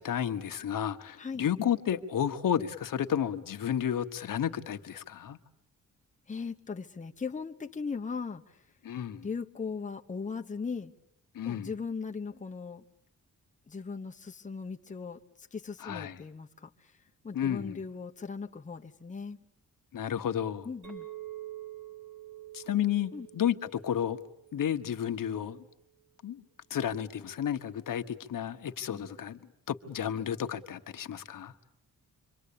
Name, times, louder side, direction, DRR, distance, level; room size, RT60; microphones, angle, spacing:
voice 1, 0.0-5.4 8.8-9.3 11.3-11.7 15.8-16.2 17.3-17.8 19.9-20.7 22.5-24.2 24.5-25.6 26.2-26.4 26.7-31.5, left 9 dB, 70° left, 1.4 m, -32 dB
voice 2, 6.3-8.6 9.2-10.9 11.4-12.8 13.7-16.9 17.2-19.4 20.6-21.1 23.1-23.3 28.9-29.1, left 5 dB, 20° left, 1.0 m, -38 dB
Chink clink, 20.8-25.3, right 15 dB, 60° right, 4.8 m, -47 dB
27.5 x 24.0 x 8.6 m
cardioid pair, 110°, 34 cm